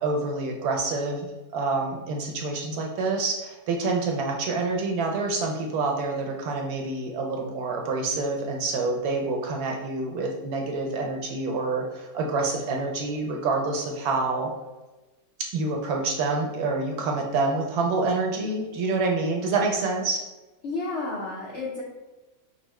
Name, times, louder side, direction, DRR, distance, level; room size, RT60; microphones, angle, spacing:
voice 1, 0.0-14.5 15.5-20.2, right 3 dB, 70° right, 1 dB, 1.0 m, -27 dB
voice 2, 20.6-21.8, left 3 dB, 70° left, -3 dB, 0.6 m, -31 dB
5.4 x 2.0 x 3.0 m, 1.1 s
omnidirectional pair, 1.9 m